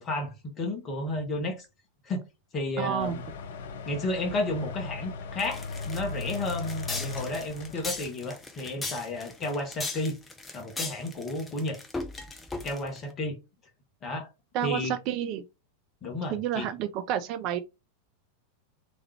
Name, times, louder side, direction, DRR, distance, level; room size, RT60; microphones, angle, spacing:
voice 1, 0.0-1.6 2.1-2.2 2.5-3.2 3.9-10.2 10.5-11.8 12.6-13.4 14.0-14.3 14.6-15.0 16.0-16.7, left 2 dB, 30° left, 1.3 m, -32 dB
voice 2, 2.8-3.2 14.5-15.4 16.3-17.6, right 10 dB, 40° right, 0.4 m, -30 dB
sound 1, 3.0-8.1, left 4 dB, 55° left, 0.5 m, -38 dB
sound 2, 5.4-13.0, left 3 dB, 10° left, 0.7 m, -38 dB
3.5 x 3.1 x 3.3 m
figure-of-eight pair, 90°, 0 cm